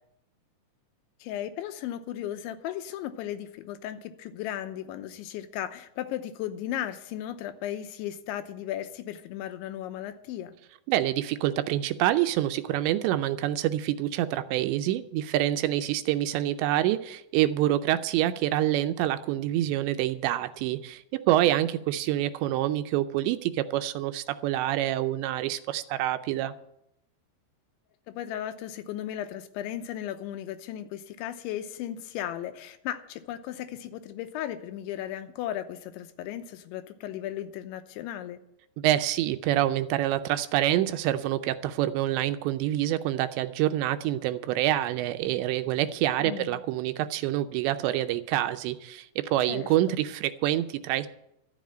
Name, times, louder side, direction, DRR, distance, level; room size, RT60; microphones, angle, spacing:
voice 1, 1.2-10.6 28.1-38.4 46.2-46.6 49.5-49.7, left 11 dB, 90° left, 9 dB, 3.2 m, -36 dB
voice 2, 10.9-26.5 38.8-51.1, right 13 dB, 85° right, 10 dB, 2.8 m, -26 dB
13.0 x 7.4 x 9.0 m, 0.80 s
omnidirectional pair, 5.2 m